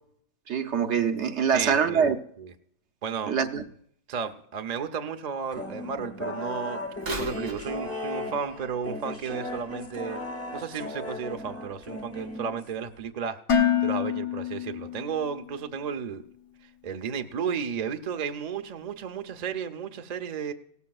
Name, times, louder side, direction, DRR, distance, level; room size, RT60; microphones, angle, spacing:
voice 1, 0.5-2.2 3.3-3.6, right 7 dB, 60° right, 1.0 m, -24 dB
voice 2, 1.5-2.1 2.4-2.5 3.0-3.4 4.1-6.8 7.1-10.2 10.5-16.2 16.6-20.5, right 7 dB, 45° right, 0.6 m, -33 dB
sound 1, 5.5-12.9, left 2 dB, 10° left, 0.8 m, -36 dB
Bird vocalization bird call bird song / Telephone, 7.0-10.8 11.4-11.5 12.3-12.4 13.0-13.1, right 1 dB, 90° right, 2.6 m, -40 dB
Dishes pots and pans, 13.5-15.6, left 9 dB, 75° left, 1.5 m, -26 dB
17.5 x 14.0 x 2.3 m
omnidirectional pair, 1.5 m